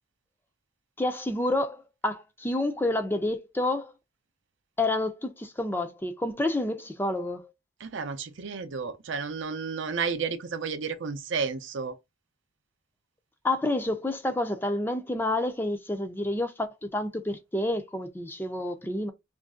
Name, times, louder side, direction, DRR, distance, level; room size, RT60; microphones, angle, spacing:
voice 1, 1.0-3.9 4.8-7.5 13.4-19.1, left 1 dB, 10° left, 0.4 m, -29 dB
voice 2, 7.8-12.0, right 5 dB, 65° right, 0.6 m, -32 dB
3.1 x 2.5 x 3.6 m
head